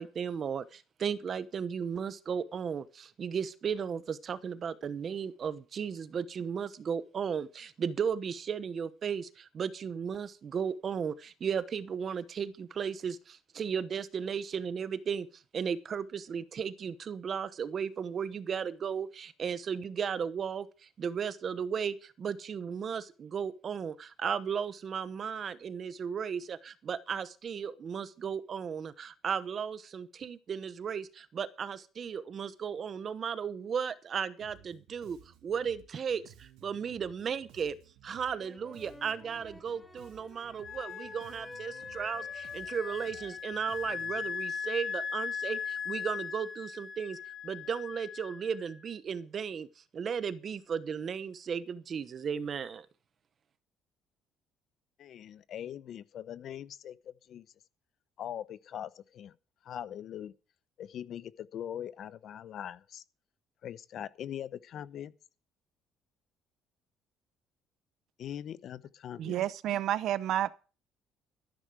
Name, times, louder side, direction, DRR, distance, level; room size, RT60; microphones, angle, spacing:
voice 1, 0.0-15.3 15.5-37.7 38.0-47.2 47.4-49.7 49.9-52.9, right 7 dB, 30° right, 1.0 m, -35 dB
Bass guitar, 34.4-44.3, right 11 dB, 85° right, 2.5 m, -58 dB
sound 1, 38.1-43.4, left 1 dB, ahead, 1.1 m, -53 dB
Wind instrument woodwind instrument, 40.6-48.9, left 6 dB, 25° left, 1.6 m, -39 dB
voice 2, 55.0-57.4 58.2-59.3 59.6-60.3 60.8-63.0 63.6-65.1 68.2-69.3, left 10 dB, 45° left, 0.8 m, -41 dB
voice 3, 69.2-70.5, right 12 dB, 55° right, 0.7 m, -30 dB
14.0 x 11.0 x 4.9 m
cardioid pair, 175°, 0 cm